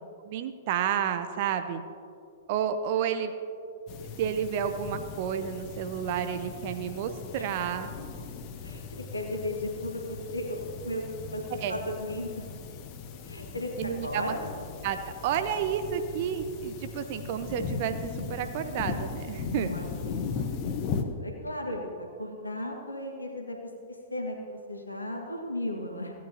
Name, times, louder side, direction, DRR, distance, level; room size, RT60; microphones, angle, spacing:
voice 1, 0.2-1.8 2.5-3.3 4.2-7.9 11.6-11.8 13.8-14.3 14.8-19.7, right 8 dB, 45° right, 9 dB, 0.7 m, -31 dB
sound 1, 3.9-21.0, left 5 dB, 35° left, 0.9 m, -38 dB
voice 2, 8.6-10.6 10.8-11.4 11.7-12.4 13.2-14.5 19.4-20.2 20.5-23.6 24.1-26.1, left 1 dB, 90° left, 1 dB, 1.7 m, -35 dB
16.5 x 9.4 x 2.8 m, 2.4 s
figure-of-eight pair, 110°, 0 cm